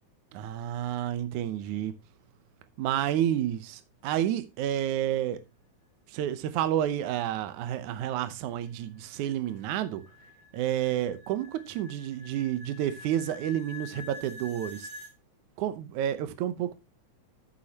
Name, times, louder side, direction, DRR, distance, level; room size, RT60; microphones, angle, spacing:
voice 1, 0.3-1.9 2.8-5.4 6.1-10.0 10.5-14.9 15.6-16.8, right 11 dB, 80° right, 2.3 m, -30 dB
sound 1, 8.0-15.1, left 3 dB, 30° right, 5.0 m, -47 dB
13.5 x 8.6 x 2.9 m
omnidirectional pair, 3.4 m